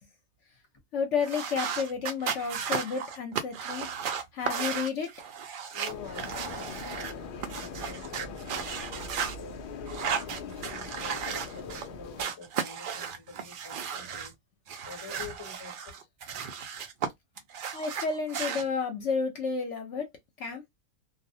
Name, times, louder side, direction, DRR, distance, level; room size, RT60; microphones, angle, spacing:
voice 1, 0.9-3.9 4.3-5.1 17.7-20.1 20.4-20.6, left 5 dB, 65° left, 0.9 m, -31 dB
sound 1, 1.2-7.1 7.4-9.3 9.9-11.9 12.2-14.3 14.7-17.1 17.4-18.6, right 7 dB, 85° right, 0.4 m, -35 dB
voice 2, 5.7-9.6 10.2-14.3 14.8-16.0, left 5 dB, 25° left, 0.7 m, -47 dB
sound 2, 5.9-12.2, left 5 dB, 85° left, 0.4 m, -41 dB
2.4 x 2.0 x 2.6 m
omnidirectional pair, 1.4 m